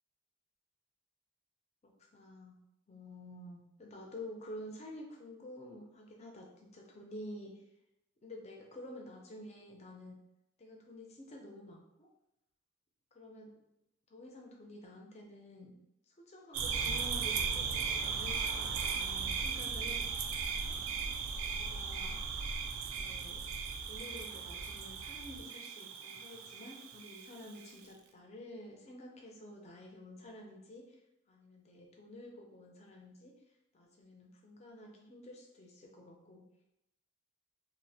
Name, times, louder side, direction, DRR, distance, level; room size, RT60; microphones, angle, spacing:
voice 1, 1.8-2.6 2.9-7.6 8.2-10.2 10.6-12.1 13.1-13.5 14.1-15.7 16.1-20.1 20.5-21.1 21.5-22.3 22.9-23.5 23.9-31.0 31.3-33.3 33.7-36.5, left 1 dB, 30° left, 0 dB, 0.4 m, -50 dB
sound 1, 16.5-27.7, right 5 dB, 90° right, 0.3 m, -37 dB
2.4 x 2.0 x 2.6 m, 0.88 s
head